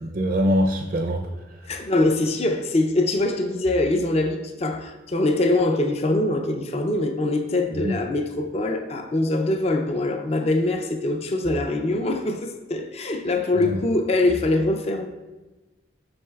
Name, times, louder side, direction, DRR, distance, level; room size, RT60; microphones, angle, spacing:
voice 1, 0.0-1.7 7.8-7.9 13.6-13.8, equal, 50° right, 0.5 m, -24 dB
voice 2, 1.7-15.1, left 2 dB, 35° left, 0.4 m, -23 dB
7.6 x 6.2 x 2.3 m
head